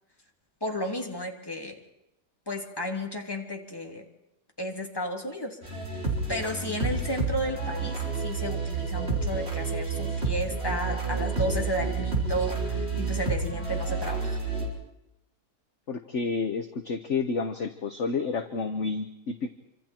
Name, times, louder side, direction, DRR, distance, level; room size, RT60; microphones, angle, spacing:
voice 1, 0.6-1.8 2.5-4.1 4.6-5.6 6.3-14.4, equal, 15° left, 2 dB, 3.1 m, -33 dB
sound 1, 5.6-14.7, right 4 dB, 35° right, 5.0 m, -30 dB
voice 2, 15.9-19.5, left 4 dB, 45° left, 8 dB, 1.4 m, -30 dB
27.5 x 26.0 x 4.5 m, 0.87 s
omnidirectional pair, 1.8 m